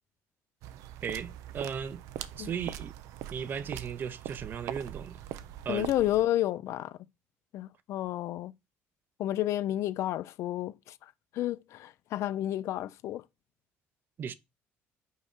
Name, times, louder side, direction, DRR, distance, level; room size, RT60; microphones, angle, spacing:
sound 1, 0.6-6.2, right 12 dB, 85° right, 0.6 m, -42 dB
voice 1, 1.0-2.0 2.4-2.9 3.3-5.2 5.7-5.9 14.2-14.3, right 7 dB, 40° right, 0.6 m, -36 dB
voice 2, 5.7-7.0 7.5-8.5 9.2-13.2, left 13 dB, 65° left, 0.4 m, -31 dB
5.5 x 4.8 x 4.4 m
cardioid pair, 140°, 5 cm